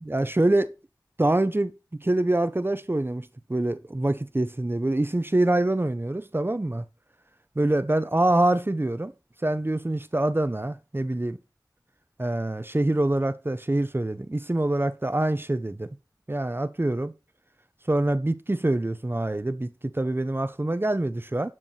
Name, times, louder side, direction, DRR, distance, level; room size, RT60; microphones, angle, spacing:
voice 1, 0.0-0.7 1.2-1.7 2.0-6.8 7.6-9.1 9.4-11.4 12.2-15.9 16.3-17.1 17.9-19.7 19.9-21.5, right 1 dB, 30° right, 0.9 m, -25 dB
12.0 x 4.8 x 5.8 m
wide cardioid pair, 55°, 8 cm